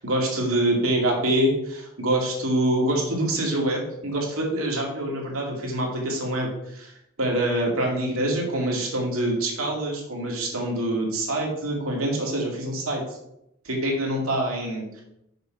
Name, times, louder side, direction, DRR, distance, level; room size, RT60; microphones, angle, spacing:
voice 1, 0.0-6.9 7.2-13.0 13.6-15.0, right 1 dB, 90° right, -1 dB, 2.3 m, -25 dB
6.7 x 6.2 x 4.6 m, 0.79 s
head